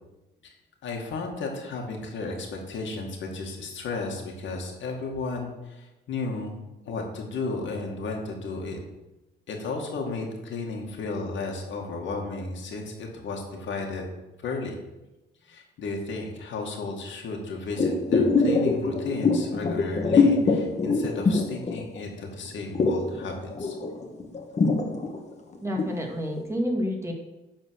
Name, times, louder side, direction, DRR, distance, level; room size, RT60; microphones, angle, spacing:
voice 1, 0.8-6.5 6.9-8.8 9.5-14.1 14.4-14.7 15.4-23.8, left 3 dB, 70° left, 1 dB, 2.1 m, -34 dB
sound 1, 17.8-22.2 22.5-26.0 26.4-26.5, left 4 dB, 35° left, 1.5 m, -23 dB
voice 2, 25.6-27.1, equal, 15° right, 0 dB, 2.1 m, -29 dB
11.0 x 4.4 x 6.4 m, 1.0 s
cardioid pair, 90°, 20 cm